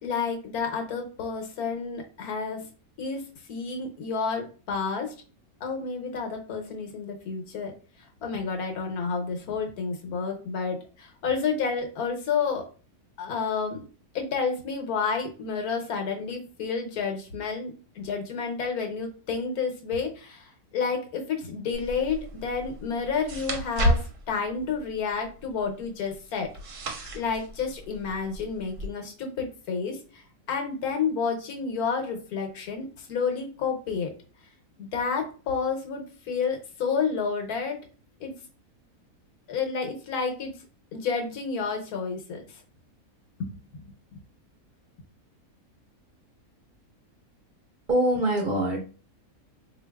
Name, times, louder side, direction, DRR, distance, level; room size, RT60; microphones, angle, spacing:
voice 1, 0.0-2.7 3.0-5.1 5.6-7.7 8.2-12.7 13.2-13.9 14.1-26.8 27.1-30.0 30.5-34.1 34.8-37.8 38.2-38.3 39.5-40.5 40.9-42.4 43.4-43.9, left 5 dB, 80° left, 3 dB, 1.3 m, -30 dB
sound 1, 21.7-28.9, equal, 65° right, 1.0 m, -33 dB
voice 2, 47.9-48.8, right 1 dB, 35° right, -3 dB, 1.0 m, -23 dB
3.9 x 2.8 x 2.2 m, 0.37 s
omnidirectional pair, 1.6 m